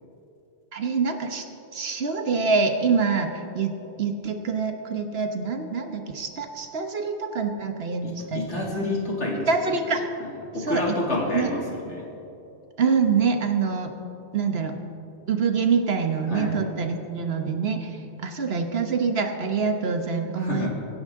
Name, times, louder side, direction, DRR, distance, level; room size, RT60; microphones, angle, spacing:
voice 1, 0.7-1.4 1.7-8.9 9.5-10.1 10.6-10.9 11.3-11.5 12.8-13.9 14.3-14.8 15.3-20.7, right 5 dB, 60° right, 5 dB, 1.3 m, -25 dB
voice 2, 8.0-9.7 10.2-10.3 10.5-12.1 16.3-16.6 20.4-20.7, left 2 dB, 85° left, -3 dB, 2.9 m, -29 dB
24.5 x 10.5 x 3.7 m, 2.8 s
omnidirectional pair, 1.2 m